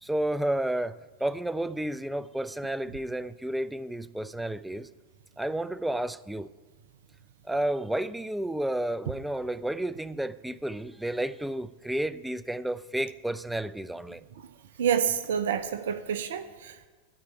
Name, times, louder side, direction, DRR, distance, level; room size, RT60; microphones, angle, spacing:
voice 1, 0.0-4.9 5.4-6.5 7.4-14.2, right 1 dB, 5° right, 0.4 m, -31 dB
voice 2, 14.8-16.9, right 8 dB, 60° right, 0.6 m, -28 dB
12.5 x 4.8 x 8.5 m
figure-of-eight pair, 90°, 0 cm